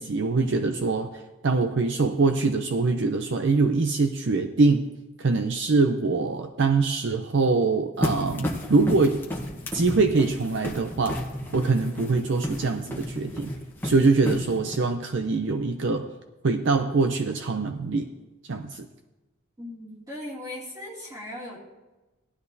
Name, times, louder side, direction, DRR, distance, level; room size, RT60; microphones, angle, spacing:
voice 1, 0.0-4.9 5.2-9.3 9.7-11.2 11.5-13.5 13.8-16.1 16.4-18.1 18.5-18.9, right 3 dB, 55° right, 7 dB, 0.5 m, -23 dB
sound 1, 8.0-14.8, left 1 dB, 10° left, 1.0 m, -32 dB
voice 2, 19.6-21.6, left 1 dB, 15° right, -4 dB, 2.5 m, -38 dB
17.5 x 12.0 x 2.7 m, 1.1 s
head